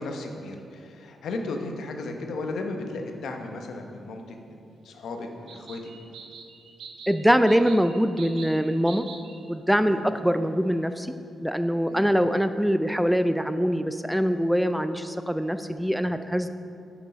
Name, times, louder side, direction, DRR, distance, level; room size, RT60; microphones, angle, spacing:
voice 1, 0.0-4.6 4.8-5.8 9.8-10.1 11.9-12.1 15.9-16.0, left 2 dB, 75° left, 3 dB, 0.8 m, -35 dB
sound 1, 2.9-3.0 5.5-9.4, right 5 dB, 85° right, 0.7 m, -45 dB
voice 2, 7.1-9.1 9.5-11.1 11.4-16.5, equal, ahead, 10 dB, 0.4 m, -23 dB
6.8 x 6.1 x 5.0 m, 2.5 s
cardioid pair, 60°, 0 cm